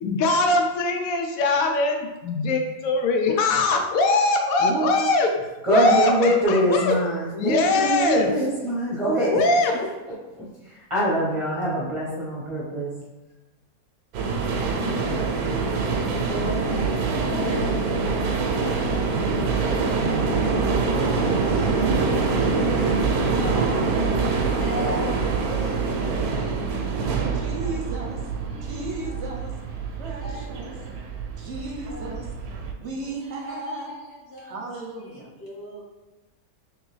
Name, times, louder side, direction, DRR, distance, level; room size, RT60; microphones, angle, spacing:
voice 1, 0.0-5.3 5.7-7.0 7.3-8.3 9.3-9.8, left 3 dB, 75° left, 3 dB, 1.0 m, -22 dB
voice 2, 4.6-5.0 5.6-9.4 10.6-12.9, right 1 dB, 25° right, -8 dB, 0.8 m, -23 dB
sound 1, 14.1-32.7, right 4 dB, 90° right, 1.1 m, -25 dB
voice 3, 16.2-21.7 22.0-24.2 24.4-26.7 27.1-27.8 28.5-29.2 30.1-30.9 31.3-32.1 33.0-35.8, left 1 dB, 50° left, -5 dB, 1.2 m, -39 dB
voice 4, 21.4-22.1 23.5-24.5 24.8-25.2 25.4-26.7 27.3-28.2 28.6-29.5 29.9-30.7 31.3-32.2 32.8-33.9 34.4-35.3, right 2 dB, 55° right, -1 dB, 0.9 m, -36 dB
3.4 x 3.3 x 3.2 m, 1.1 s
omnidirectional pair, 1.6 m